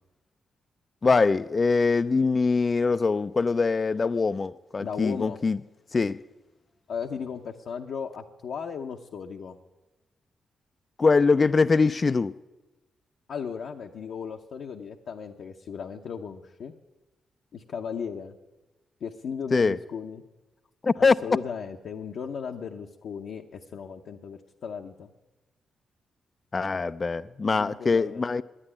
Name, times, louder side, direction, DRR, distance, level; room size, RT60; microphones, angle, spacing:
voice 1, 1.0-5.6 5.9-6.2 11.0-12.3 19.5-19.8 20.8-21.4 26.5-28.4, left 4 dB, 40° left, 0.3 m, -23 dB
voice 2, 4.8-5.4 6.9-9.6 13.3-16.7 17.5-18.4 19.0-20.2 20.9-25.1 27.5-28.2, left 6 dB, 70° left, 0.7 m, -36 dB
9.9 x 9.6 x 10.0 m
supercardioid pair, 50°, 0 cm